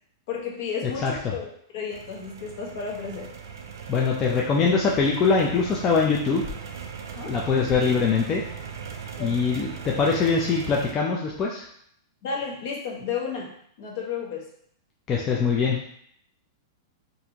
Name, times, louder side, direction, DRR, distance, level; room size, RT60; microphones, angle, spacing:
voice 1, 0.3-3.3 7.1-7.4 9.2-9.4 12.2-13.5 13.8-14.5, left 6 dB, 55° left, -2 dB, 1.1 m, -32 dB
sound 1, 1.9-10.9, right 6 dB, 80° right, 0.5 m, -39 dB
voice 2, 3.9-6.5 7.3-8.4 9.2-11.6 15.1-15.8, left 5 dB, 20° left, -3 dB, 0.4 m, -23 dB
4.2 x 2.6 x 2.8 m, 0.66 s
supercardioid pair, 150°, 2 cm